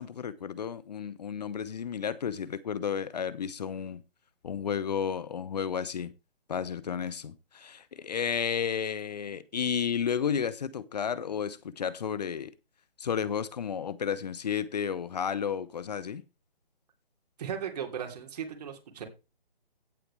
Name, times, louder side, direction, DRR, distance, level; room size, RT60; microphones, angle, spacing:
voice 1, 0.0-4.0 4.4-6.1 6.5-12.5 13.0-16.2, left 7 dB, 45° left, 0.8 m, -32 dB
voice 2, 17.4-19.1, right 8 dB, 45° right, 3.2 m, -36 dB
16.0 x 7.9 x 3.3 m
figure-of-eight pair, 150°, 29 cm